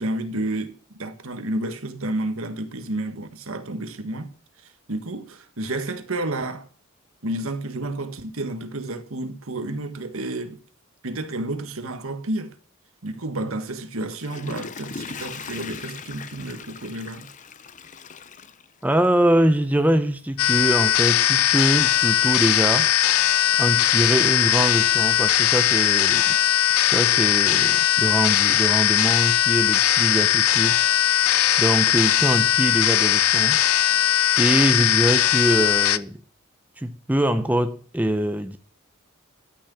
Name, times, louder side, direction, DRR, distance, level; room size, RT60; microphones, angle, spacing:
voice 1, 0.0-4.3 4.9-6.7 7.2-10.6 11.0-12.5 13.0-17.3, right 1 dB, 75° right, 1.5 m, -30 dB
Water / Toilet flush, 14.0-19.3 19.7-19.8, left 5 dB, 35° left, 0.6 m, -39 dB
voice 2, 18.8-22.9 23.6-26.4 26.8-30.8 31.6-33.6 34.4-36.2 36.8-38.6, right 1 dB, 5° right, 0.6 m, -23 dB
sound 1, 20.4-36.0, left 11 dB, 85° left, 0.5 m, -19 dB
13.0 x 6.2 x 6.9 m
head